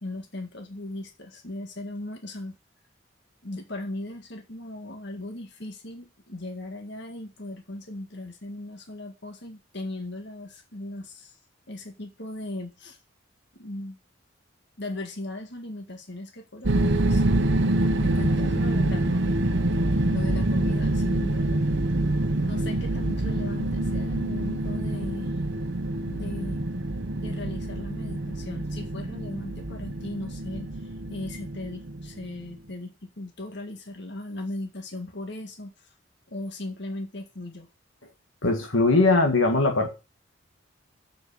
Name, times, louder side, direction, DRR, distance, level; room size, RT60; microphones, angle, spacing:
voice 1, 0.0-2.6 3.4-11.4 11.7-13.0 13.5-14.0 14.8-17.2 18.0-19.3 20.1-21.6 22.4-25.3 26.0-26.6 27.2-35.9 36.3-37.7, left 1 dB, 60° left, 1.9 m, -37 dB
sound 1, 16.6-32.5, right 1 dB, 65° right, 1.1 m, -26 dB
voice 2, 38.4-39.9, left 3 dB, 80° left, 2.0 m, -20 dB
7.5 x 6.2 x 7.4 m
head